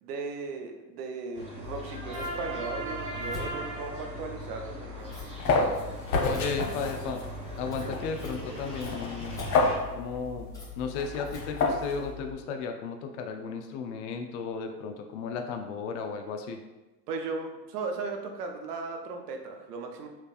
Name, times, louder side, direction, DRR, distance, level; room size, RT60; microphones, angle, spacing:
voice 1, 0.0-5.1 7.8-7.9 17.1-20.1, right 4 dB, 65° right, 4 dB, 0.7 m, -37 dB
sound 1, 1.3-9.8, right 2 dB, 10° right, 1.4 m, -39 dB
Scissors, 1.6-12.3, left 6 dB, 5° left, 1.0 m, -43 dB
sound 2, 5.0-12.1, left 3 dB, 75° left, 0.8 m, -30 dB
voice 2, 6.2-7.2 7.6-9.4 9.9-10.5 10.8-16.6, left 5 dB, 45° left, 5 dB, 0.4 m, -34 dB
3.3 x 3.1 x 2.4 m, 1.1 s
figure-of-eight pair, 75°, 50 cm